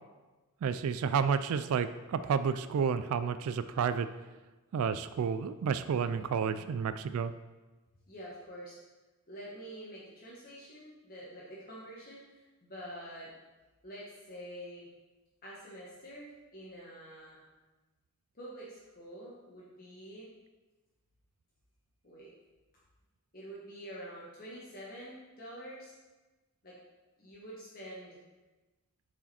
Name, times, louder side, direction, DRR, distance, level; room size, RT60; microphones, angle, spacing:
voice 1, 0.6-4.1 4.7-7.3, right 6 dB, 75° right, 13 dB, 0.3 m, -30 dB
voice 2, 6.3-6.6 8.1-8.8 9.3-13.3 13.8-14.9 15.4-17.4 18.3-20.3 22.0-22.3 23.3-25.9 26.6-26.8 27.2-28.2, equal, 40° left, -6 dB, 1.2 m, -47 dB
7.1 x 4.9 x 4.2 m, 1.2 s
head